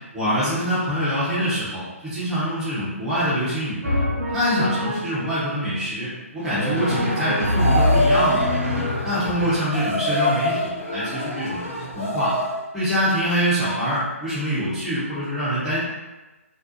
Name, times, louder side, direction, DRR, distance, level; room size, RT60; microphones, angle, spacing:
voice 1, 0.1-3.8 4.3-8.5 9.0-12.4 12.7-15.8, equal, 5° right, -13 dB, 0.6 m, -25 dB
Drum, 3.8-5.3 6.4-9.5, left 1 dB, 65° right, 0.8 m, -24 dB
sound 1, 6.5-12.6, left 1 dB, 60° left, 0.9 m, -26 dB
2.7 x 2.0 x 2.4 m, 1.1 s
figure-of-eight pair, 140°, 8 cm